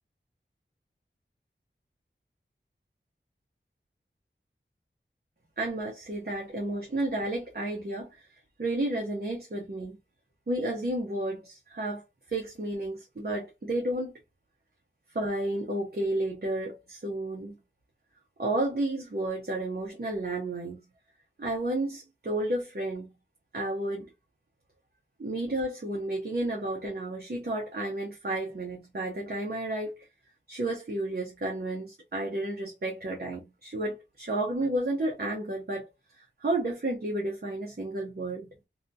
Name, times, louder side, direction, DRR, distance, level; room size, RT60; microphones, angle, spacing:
voice 1, 5.6-8.3 8.6-10.0 10.5-14.1 15.1-17.6 18.4-20.8 21.4-23.1 23.5-24.1 25.2-30.1 30.5-38.5, right 1 dB, 50° right, 0.8 m, -32 dB
2.9 x 2.3 x 2.6 m
wide cardioid pair, 50°, 20 cm